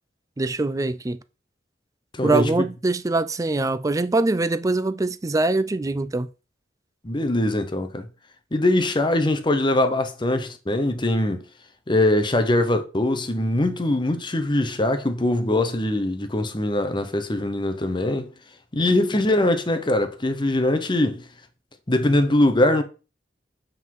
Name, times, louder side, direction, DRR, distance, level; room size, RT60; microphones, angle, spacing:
voice 1, 0.4-1.2 2.2-6.3, right 2 dB, 20° right, 0.4 m, -23 dB
voice 2, 2.1-2.7 7.0-8.1 8.5-11.4 11.9-18.3 18.7-21.2 21.9-22.8, left 1 dB, 25° left, 0.8 m, -22 dB
8.0 x 3.8 x 4.7 m
head